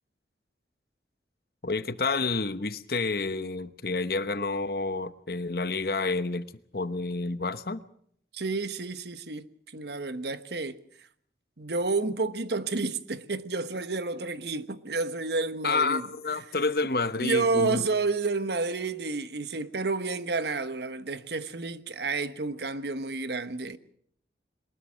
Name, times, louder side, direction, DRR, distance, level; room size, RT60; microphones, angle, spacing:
voice 1, 1.6-6.5 6.7-7.8 15.6-17.8, left 3 dB, 60° left, 1.0 m, -29 dB
voice 2, 8.3-10.8 11.6-16.0 17.2-23.8, right 3 dB, 75° right, 1.2 m, -30 dB
22.5 x 20.5 x 6.4 m
head